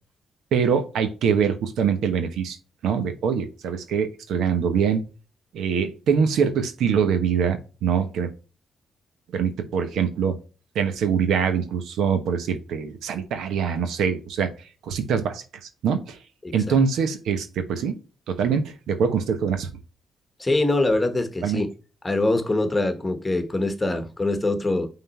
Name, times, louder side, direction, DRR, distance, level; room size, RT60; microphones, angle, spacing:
voice 1, 0.5-2.6 2.8-5.0 5.5-8.3 9.3-10.4 10.7-14.5 14.9-15.4 15.8-16.2 16.5-18.0 18.3-19.7 21.4-21.6, right 7 dB, 85° right, 1.0 m, -23 dB
voice 2, 16.4-16.8 20.4-21.7 22.0-24.9, left 2 dB, 20° left, 1.3 m, -24 dB
5.8 x 3.8 x 4.3 m
cardioid pair, 90°, 0 cm